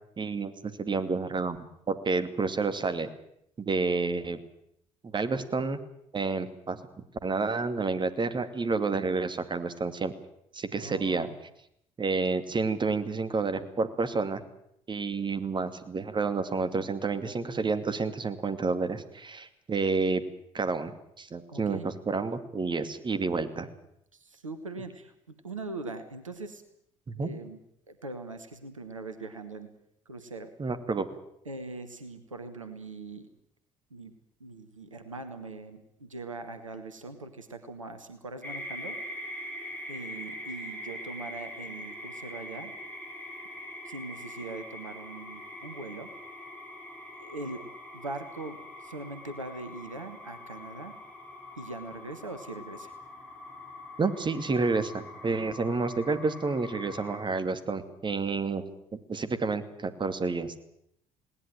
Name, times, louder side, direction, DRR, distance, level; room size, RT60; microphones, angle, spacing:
voice 1, 0.2-1.6 1.9-3.1 3.6-4.4 5.0-5.8 6.1-6.8 7.2-10.1 10.5-11.3 12.0-14.4 14.9-20.2 20.5-23.7 27.1-27.3 30.6-31.1 54.0-58.6 58.9-60.5, right 4 dB, 30° right, 9 dB, 2.4 m, -29 dB
voice 2, 10.8-11.4 21.5-21.9 24.1-26.6 27.2-27.6 27.9-29.7 30.0-30.5 31.4-33.3 33.9-34.1 34.4-39.0 39.9-42.7 43.8-46.1 47.2-47.7 47.9-50.9 51.6-52.9 55.3-55.8, right 3 dB, 85° right, 9 dB, 1.2 m, -41 dB
sound 1, 38.4-57.2, left 1 dB, 10° left, 6.1 m, -43 dB
20.0 x 18.0 x 9.0 m, 0.73 s
figure-of-eight pair, 50°, 16 cm